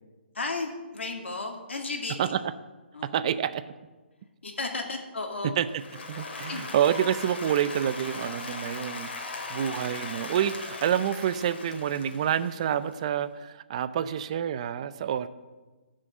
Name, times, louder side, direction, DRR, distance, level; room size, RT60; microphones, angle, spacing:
voice 1, 0.3-2.3 2.9-3.2 4.4-5.5 6.5-6.7, left 3 dB, 85° left, 2 dB, 2.4 m, -34 dB
voice 2, 3.1-3.6 5.6-5.7 6.1-9.1 9.5-15.3, right 9 dB, 35° right, 14 dB, 0.5 m, -28 dB
Applause, 5.7-12.9, left 3 dB, 65° left, 2.5 m, -39 dB
13.5 x 6.4 x 7.7 m, 1.2 s
hypercardioid pair, 160°, 6 cm